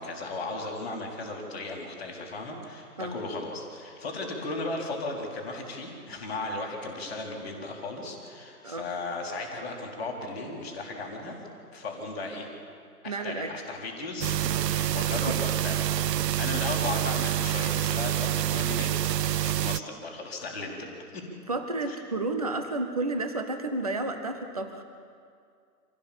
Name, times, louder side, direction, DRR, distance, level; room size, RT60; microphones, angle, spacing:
voice 1, 0.0-11.4 11.7-12.5 13.0-18.9 19.4-21.3 21.8-22.0, left 2 dB, 5° left, -12 dB, 1.0 m, -36 dB
voice 2, 13.0-13.5 15.3-15.4 21.5-24.8, right 2 dB, 25° right, 6 dB, 0.8 m, -31 dB
sound 1, 14.2-19.8, right 11 dB, 80° right, 0.5 m, -27 dB
26.0 x 17.0 x 7.1 m, 2.3 s
hypercardioid pair, 170°, 48 cm